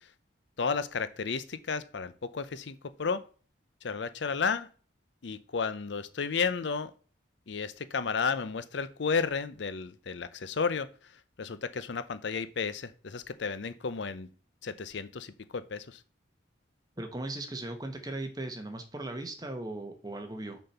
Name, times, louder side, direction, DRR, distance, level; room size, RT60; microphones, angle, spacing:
voice 1, 0.6-3.3 3.8-4.7 5.2-6.9 7.5-10.9 11.4-14.3 14.6-16.0, left 5 dB, 70° left, 0.6 m, -32 dB
voice 2, 17.0-20.6, right 2 dB, 20° right, 1.1 m, -38 dB
6.5 x 4.3 x 5.6 m
head